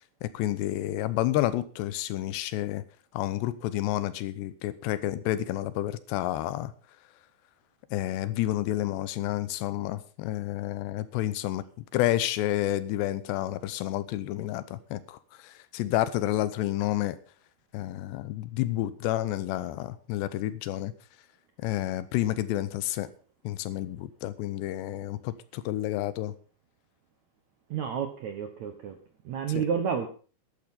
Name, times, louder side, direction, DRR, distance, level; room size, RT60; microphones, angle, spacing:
voice 1, 0.2-2.8 3.1-6.7 7.9-11.6 11.9-17.2 17.7-20.9 21.6-23.1 23.4-26.3 29.5-29.6, left 14 dB, 85° left, 15 dB, 3.0 m, -30 dB
voice 2, 27.7-28.9 29.2-30.1, right 7 dB, 70° right, 6 dB, 1.8 m, -30 dB
12.0 x 10.5 x 5.5 m, 0.40 s
omnidirectional pair, 4.9 m